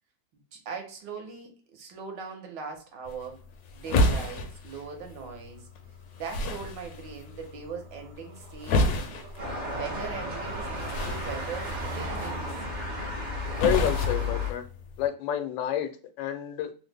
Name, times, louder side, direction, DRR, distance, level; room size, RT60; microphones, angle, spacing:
voice 1, 0.3-3.4 3.7-5.7 6.2-9.2 9.7-12.5, right 5 dB, 70° right, 1.4 m, -40 dB
sound 1, 3.1-15.1, left 1 dB, 70° left, 0.9 m, -32 dB
sound 2, 5.6-5.8 6.1-12.4, right 6 dB, 90° right, 1.4 m, -46 dB
sound 3, 9.4-14.5, left 2 dB, 55° right, 0.5 m, -33 dB
voice 2, 13.6-14.6 15.0-15.9 16.2-16.7, left 10 dB, 90° left, 1.3 m, -28 dB
3.4 x 2.0 x 3.3 m
omnidirectional pair, 2.1 m